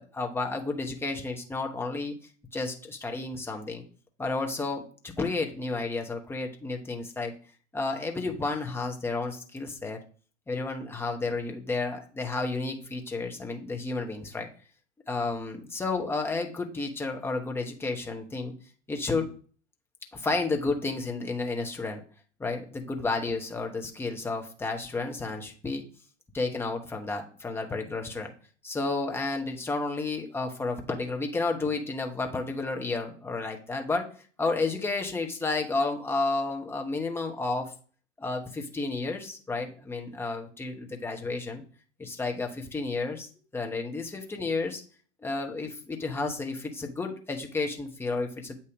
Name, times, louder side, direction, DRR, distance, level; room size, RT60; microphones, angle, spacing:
voice 1, 0.0-2.1 2.5-3.8 4.2-4.8 5.2-7.3 7.7-10.0 10.5-14.5 15.1-18.5 18.9-19.3 20.1-22.0 22.4-25.8 26.3-28.3 28.6-34.1 34.4-37.7 38.2-41.6 42.0-44.8 45.2-48.5, left 3 dB, 5° left, 2 dB, 0.9 m, -31 dB
8.2 x 2.8 x 5.0 m, 0.41 s
hypercardioid pair, 105°, 36 cm